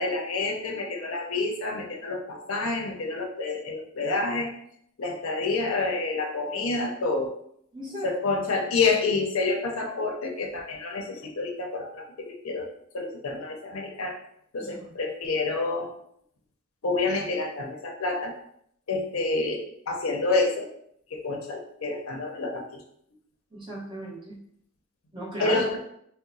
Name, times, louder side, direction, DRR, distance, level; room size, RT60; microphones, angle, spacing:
voice 1, 0.0-4.5 5.0-7.3 8.0-14.2 14.5-15.9 16.8-18.3 18.9-20.7 21.1-22.7 25.4-25.8, left 3 dB, 85° left, 1 dB, 0.6 m, -28 dB
voice 2, 7.7-8.1 14.6-14.9 23.5-24.4 25.1-25.6, right 1 dB, 25° right, -6 dB, 1.0 m, -36 dB
2.9 x 2.1 x 3.8 m, 0.70 s
head